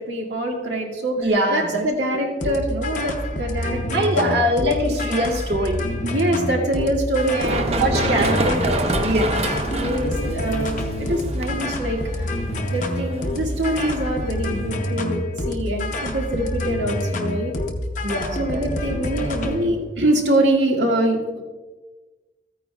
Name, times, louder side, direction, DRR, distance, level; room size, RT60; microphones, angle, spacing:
voice 1, 0.0-4.3 6.0-8.4 9.4-12.0 12.7-17.5 18.4-21.4, right 1 dB, 85° right, 0 dB, 1.9 m, -24 dB
voice 2, 1.2-1.8 3.9-5.8 7.8-9.5 18.0-18.6, equal, 65° right, 2 dB, 1.7 m, -23 dB
sound 1, 2.4-19.7, left 1 dB, 45° left, 0.7 m, -27 dB
Run, 7.2-14.7, right 2 dB, 35° right, 0.6 m, -28 dB
14.5 x 9.1 x 2.3 m, 1.3 s
head